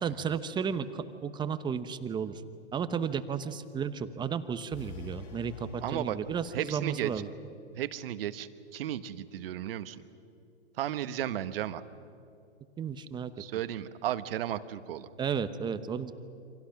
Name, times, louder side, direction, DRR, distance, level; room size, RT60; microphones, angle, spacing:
voice 1, 0.0-2.3 2.7-7.3 12.8-13.3 15.2-16.1, right 7 dB, 15° right, 12 dB, 1.0 m, -33 dB
sound 1, 4.7-7.0, left 7 dB, 55° left, 3.6 m, -48 dB
voice 2, 5.8-6.2 6.5-7.1 7.7-10.0 10.8-11.8 13.4-15.1, right 12 dB, 55° right, 12 dB, 1.3 m, -34 dB
29.0 x 26.0 x 6.0 m, 2.6 s
hypercardioid pair, 125°, 34 cm